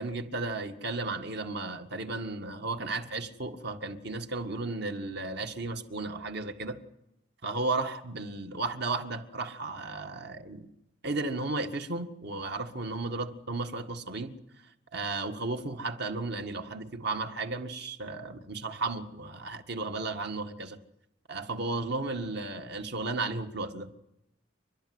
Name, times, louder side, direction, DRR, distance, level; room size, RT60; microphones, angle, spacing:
voice 1, 0.0-6.8 7.4-10.7 11.0-14.4 14.9-20.8 21.3-23.9, right 3 dB, 60° right, 1.9 m, -34 dB
29.5 x 12.0 x 9.6 m
head